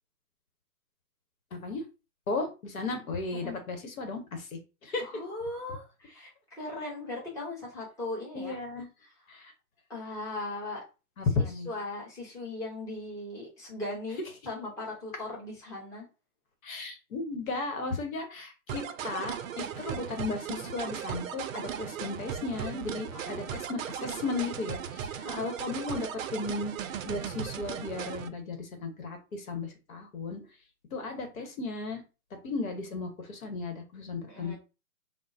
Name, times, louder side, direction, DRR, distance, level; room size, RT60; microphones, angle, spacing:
voice 1, 1.5-1.8 2.3-5.1 8.3-8.9 9.3-9.5 11.2-11.7 16.6-30.4 30.9-32.0 32.4-34.6, left 3 dB, 65° left, 5 dB, 1.1 m, -35 dB
voice 2, 5.0-8.6 9.9-10.8 11.7-14.2 14.4-16.1 23.1-23.6 25.2-25.6 34.3-34.6, left 2 dB, 5° left, -6 dB, 0.8 m, -38 dB
sound 1, 18.7-28.3, right 8 dB, 60° right, 0.5 m, -37 dB
3.7 x 2.0 x 2.5 m, 0.30 s
hypercardioid pair, 135°, 46 cm